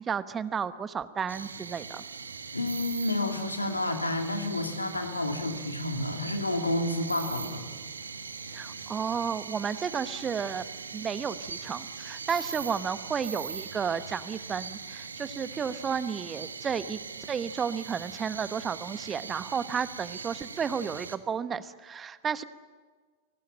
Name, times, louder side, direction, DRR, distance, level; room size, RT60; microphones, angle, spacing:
voice 1, 0.0-2.0 8.5-10.7 10.9-17.0 17.3-22.4, right 7 dB, 20° right, 15 dB, 1.0 m, -32 dB
sound 1, 1.3-21.2, right 5 dB, 75° right, 1.5 m, -41 dB
voice 2, 2.5-7.6, left 2 dB, 80° left, 6 dB, 2.7 m, -30 dB
29.5 x 19.5 x 8.8 m, 1.5 s
figure-of-eight pair, 90°, 0 cm